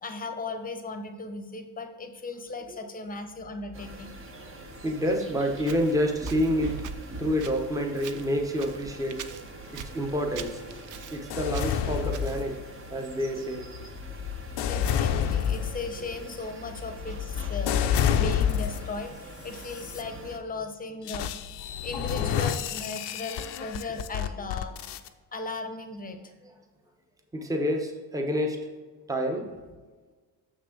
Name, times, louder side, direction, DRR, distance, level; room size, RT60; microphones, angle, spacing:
voice 1, 0.0-4.1 14.6-24.8 25.3-26.2, left 3 dB, 20° left, 6 dB, 0.8 m, -37 dB
sound 1, 3.7-20.4, right 2 dB, 30° right, 1.0 m, -43 dB
voice 2, 4.2-6.9 7.1-9.3 9.7-10.6 11.1-12.6 12.9-13.7 16.0-16.3 17.4-17.5 20.1-20.3 21.0-21.1 21.6-21.8 24.2-24.6 26.4-26.5 27.3-28.6 29.1-29.6, equal, 10° right, 3 dB, 0.9 m, -29 dB
Walk footsteps, 5.6-12.6, right 8 dB, 50° right, 0.5 m, -45 dB
sound 2, 11.3-12.9 13.5-19.0 19.6-20.0 21.1-25.1, left 9 dB, 80° left, 0.6 m, -29 dB
6.9 x 6.2 x 3.7 m, 1.4 s
cardioid pair, 135°, 40 cm